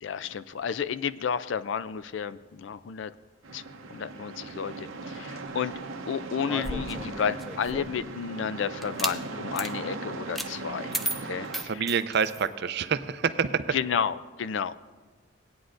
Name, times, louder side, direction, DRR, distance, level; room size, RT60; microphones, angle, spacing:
voice 1, 0.0-3.1 3.5-3.6 3.9-5.7 6.1-10.9 11.3-11.7 13.7-14.7, left 7 dB, 65° left, 14 dB, 0.4 m, -31 dB
sound 1, 3.4-11.6, right 3 dB, 85° right, 0.8 m, -38 dB
sound 2, 6.4-8.0 8.8-9.2 9.5-9.7 10.3-10.5 10.9-12.5, right 1 dB, ahead, 0.4 m, -34 dB
voice 2, 11.6-13.8, right 6 dB, 55° right, 12 dB, 0.5 m, -27 dB
18.0 x 9.3 x 2.5 m, 1.3 s
head